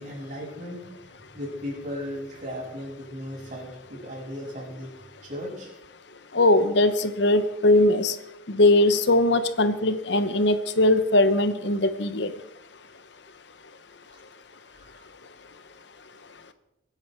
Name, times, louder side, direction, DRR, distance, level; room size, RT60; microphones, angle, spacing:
voice 1, 0.0-5.7 14.1-14.2 14.6-15.1, left 1 dB, 40° right, -3 dB, 7.2 m, -37 dB
voice 2, 6.3-8.1 8.5-12.3, left 2 dB, 60° left, 11 dB, 1.0 m, -20 dB
24.0 x 10.0 x 4.6 m, 0.90 s
head